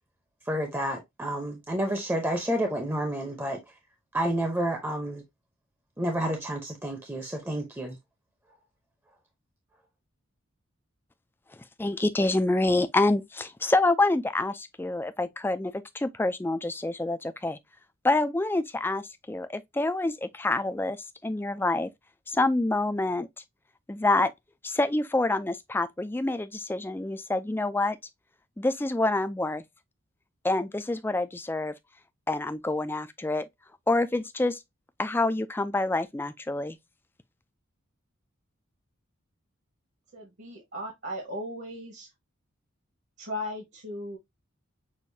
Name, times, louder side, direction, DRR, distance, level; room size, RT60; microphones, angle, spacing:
voice 1, 0.5-3.7 4.1-5.2 6.0-8.0, right 1 dB, 10° right, 0.7 m, -30 dB
voice 2, 11.8-17.6 18.0-21.0 21.2-21.9 22.3-23.3 23.9-24.3 24.6-28.0 28.6-29.6 30.4-31.7 32.3-33.5 33.9-34.6 35.0-36.8, left 2 dB, 10° left, 0.3 m, -27 dB
voice 3, 40.1-42.1 43.2-44.2, left 1 dB, 55° right, 1.4 m, -37 dB
6.4 x 2.6 x 2.6 m
head